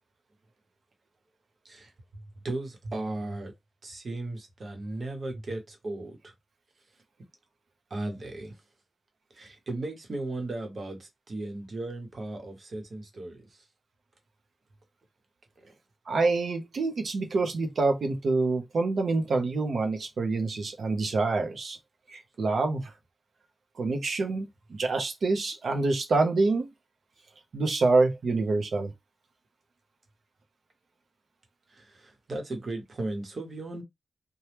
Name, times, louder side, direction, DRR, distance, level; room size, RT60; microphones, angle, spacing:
voice 1, 1.6-3.5 3.8-6.3 7.9-8.6 9.3-13.6 15.6-15.7 31.7-33.8, right 2 dB, 55° right, 1.0 m, -36 dB
voice 2, 16.1-21.8 22.1-22.9 23.8-26.7 27.5-28.9, right 3 dB, 90° right, 0.7 m, -26 dB
2.9 x 2.2 x 3.3 m
wide cardioid pair, 125°, 0 cm